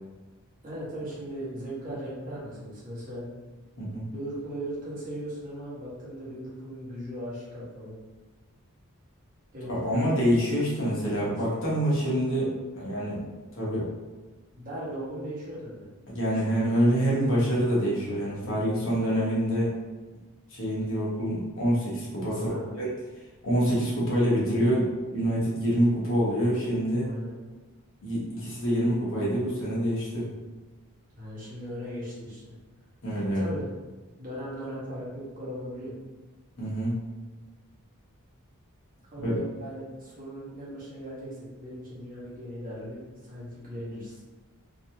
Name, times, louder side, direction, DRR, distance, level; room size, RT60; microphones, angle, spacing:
voice 1, 0.6-3.3 4.1-8.0 9.5-10.1 11.0-11.1 11.6-11.8 14.5-15.8 16.4-16.7 22.2-22.7 27.0-27.3 31.1-32.5 33.2-33.7 34.2-35.9 39.1-44.2, equal, 40° right, -8 dB, 1.1 m, -38 dB
voice 2, 9.7-13.2 13.5-13.9 16.1-19.7 20.5-22.9 23.4-27.1 28.0-30.3 33.0-33.5 36.6-37.0 39.2-39.4, equal, 60° left, -7 dB, 1.2 m, -26 dB
3.1 x 2.7 x 2.8 m, 1.2 s
head